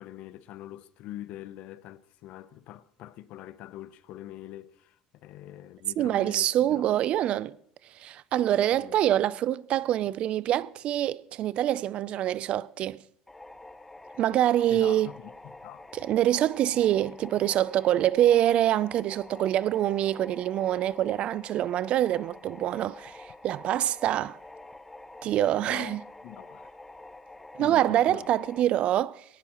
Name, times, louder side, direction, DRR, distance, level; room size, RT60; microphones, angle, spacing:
voice 1, 0.0-6.9 8.7-9.0 14.7-15.9 25.5-26.7 27.6-28.4, left 13 dB, 65° left, 0.7 m, -44 dB
voice 2, 6.0-7.6 7.9-13.0 14.2-15.1 15.9-24.4 25.2-26.0 27.6-29.2, right 12 dB, 50° right, 0.4 m, -25 dB
sound 1, 13.3-28.6, left 2 dB, 10° left, 0.6 m, -47 dB
19.0 x 18.0 x 3.0 m
supercardioid pair, 110°, 2 cm